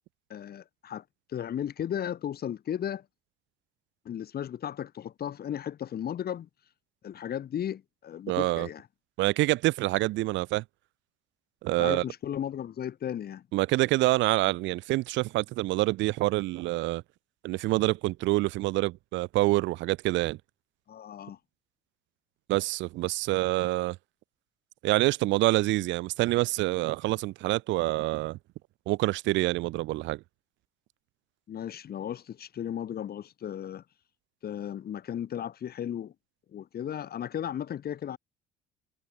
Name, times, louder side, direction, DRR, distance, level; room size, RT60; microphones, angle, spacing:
voice 1, 0.3-1.0 1.3-3.0 4.0-6.5 7.0-8.8 11.8-13.4 20.9-21.4 31.5-33.8 34.4-36.1 36.5-38.2, left 10 dB, 50° left, 5.9 m, -35 dB
voice 2, 8.3-8.7 9.2-10.6 11.6-12.0 13.5-17.0 17.4-20.4 22.5-24.0 24.8-28.4 28.9-30.2, right 18 dB, 70° right, 2.9 m, -26 dB
supercardioid pair, 75°, 20 cm